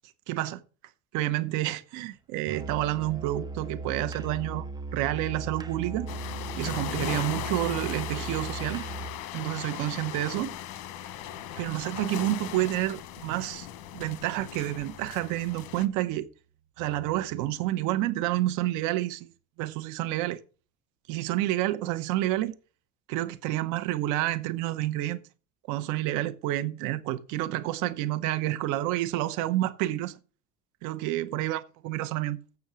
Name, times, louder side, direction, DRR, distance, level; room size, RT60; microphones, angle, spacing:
voice 1, 0.3-0.6 1.1-4.7 4.9-6.1 6.6-8.8 9.3-10.6 11.6-13.7 13.9-16.3 16.8-19.3 19.6-20.4 21.1-22.6 23.1-25.2 25.7-30.1 30.8-32.4, right 15 dB, 75° right, 0.9 m, -29 dB
Musical instrument, 2.5-9.2, right 3 dB, 15° right, 0.5 m, -37 dB
sound 1, 6.1-15.9, left 11 dB, 80° left, 1.1 m, -38 dB
7.8 x 7.1 x 6.1 m
cardioid pair, 155°, 30 cm